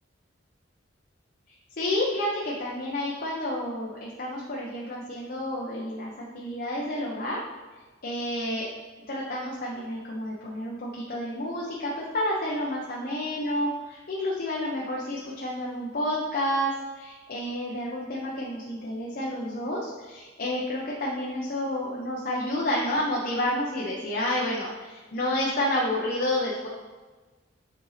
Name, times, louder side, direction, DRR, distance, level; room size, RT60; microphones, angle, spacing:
voice 1, 1.8-7.4 8.0-8.7 9.1-26.7, left 1 dB, 50° left, -4 dB, 0.8 m, -30 dB
7.4 x 4.4 x 3.2 m, 1.3 s
head